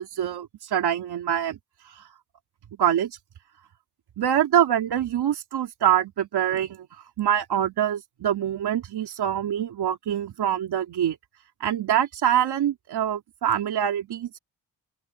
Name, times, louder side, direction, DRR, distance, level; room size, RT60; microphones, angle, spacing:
voice 1, 0.0-1.6 2.8-3.1 4.2-6.8 7.2-11.2 11.6-14.3, right 10 dB, 85° right, 3.7 m, -24 dB
open air
wide cardioid pair, 175°, 38 cm